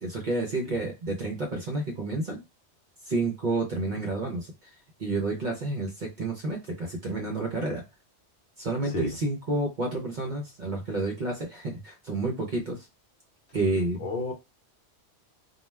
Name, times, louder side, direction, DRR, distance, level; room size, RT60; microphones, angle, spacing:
voice 1, 0.0-2.4 3.1-4.5 5.0-7.9 8.6-12.9 13.5-14.1, right 2 dB, 50° right, 0.6 m, -30 dB
voice 2, 8.9-9.2 14.0-14.3, left 2 dB, 60° left, 0.8 m, -31 dB
2.3 x 2.1 x 3.2 m
omnidirectional pair, 1.2 m